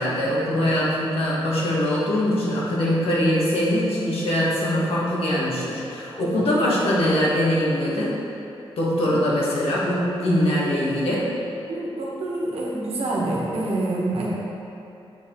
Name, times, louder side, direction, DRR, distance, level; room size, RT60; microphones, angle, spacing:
voice 1, 0.0-8.1 8.8-11.2, left 1 dB, 75° left, -6 dB, 1.6 m, -22 dB
voice 2, 6.1-6.4 9.0-9.2 11.6-14.3, right 2 dB, 85° right, -5 dB, 1.4 m, -27 dB
7.8 x 4.8 x 3.7 m, 2.8 s
wide cardioid pair, 150°, 10 cm